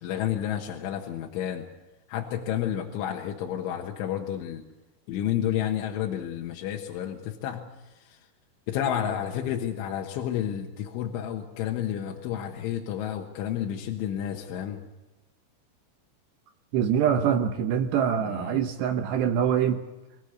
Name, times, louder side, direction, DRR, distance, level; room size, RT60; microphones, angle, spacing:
voice 1, 0.0-1.7 2.1-4.6 5.1-8.3 8.7-14.8 18.2-18.6, left 10 dB, 75° left, 1 dB, 3.7 m, -31 dB
voice 2, 16.7-19.8, right 8 dB, 75° right, 6 dB, 2.8 m, -24 dB
25.5 x 16.0 x 8.3 m, 1.1 s
omnidirectional pair, 5.7 m